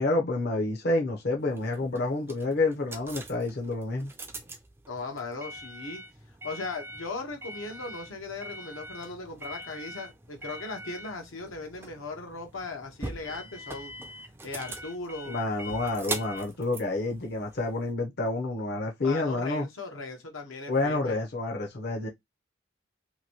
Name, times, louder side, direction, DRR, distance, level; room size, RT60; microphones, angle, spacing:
voice 1, 0.0-4.1 15.3-19.7 20.7-22.1, left 2 dB, 50° left, 0.7 m, -29 dB
sound 1, 1.5-17.9, right 1 dB, 10° right, 0.3 m, -42 dB
voice 2, 4.9-6.0 6.4-13.9 14.4-15.4 19.0-21.2, left 3 dB, 80° left, 0.9 m, -38 dB
2.9 x 2.6 x 2.8 m
head